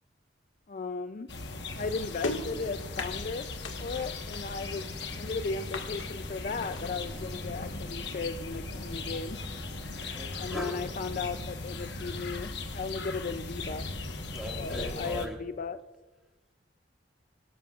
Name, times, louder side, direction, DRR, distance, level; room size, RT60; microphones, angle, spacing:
voice 1, 0.7-1.3 1.7-3.5 3.8-9.4 10.4-13.9 14.6-15.8, left 4 dB, 45° left, 10 dB, 0.4 m, -36 dB
sound 1, 1.3-15.3, left 3 dB, 60° left, 1.2 m, -38 dB
sound 2, 1.7-6.9, left 3 dB, 80° left, 1.7 m, -41 dB
Mechanical fan, 4.5-12.9, equal, 30° right, 1.7 m, -49 dB
voice 2, 9.7-10.8 14.3-15.4, equal, ahead, 0 dB, 1.9 m, -40 dB
24.0 x 13.0 x 2.4 m, 1.1 s
head